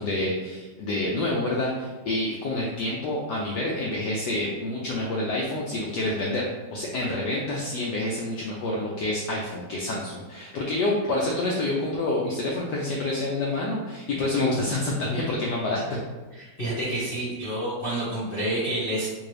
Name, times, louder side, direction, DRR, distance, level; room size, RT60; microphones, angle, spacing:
voice 1, 0.0-16.0, left 2 dB, 75° left, -3 dB, 0.9 m, -28 dB
voice 2, 16.4-19.1, right 1 dB, 40° left, -9 dB, 0.8 m, -29 dB
3.7 x 2.7 x 3.2 m, 1.2 s
omnidirectional pair, 2.3 m